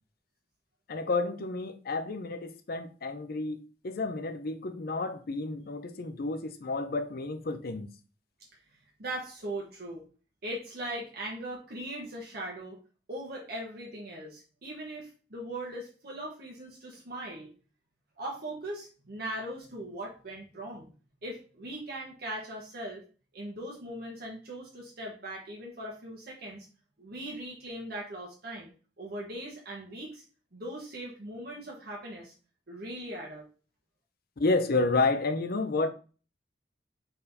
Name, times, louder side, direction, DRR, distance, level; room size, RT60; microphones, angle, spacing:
voice 1, 0.9-7.9 34.4-35.9, left 3 dB, 55° left, 0.6 m, -30 dB
voice 2, 9.0-10.1 10.4-12.8 13.1-17.5 18.2-20.9 21.2-23.0 23.3-26.7 27.0-28.7 29.0-30.2 30.5-32.3 32.7-33.4, right 1 dB, 60° right, 1.1 m, -39 dB
4.2 x 4.1 x 2.6 m
head